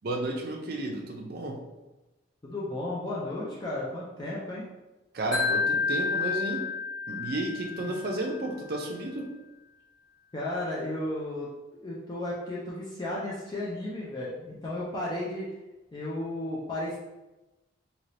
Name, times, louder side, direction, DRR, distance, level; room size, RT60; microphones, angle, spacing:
voice 1, 0.0-1.6 5.1-6.6 7.1-9.3, right 2 dB, 50° right, 1 dB, 0.5 m, -32 dB
voice 2, 2.4-4.6 7.8-7.9 10.3-15.5 15.9-17.0, left 1 dB, 20° left, -7 dB, 0.4 m, -34 dB
Wind chime, 5.3-8.4, left 5 dB, 60° left, 1.0 m, -30 dB
2.8 x 2.7 x 3.2 m, 1.1 s
head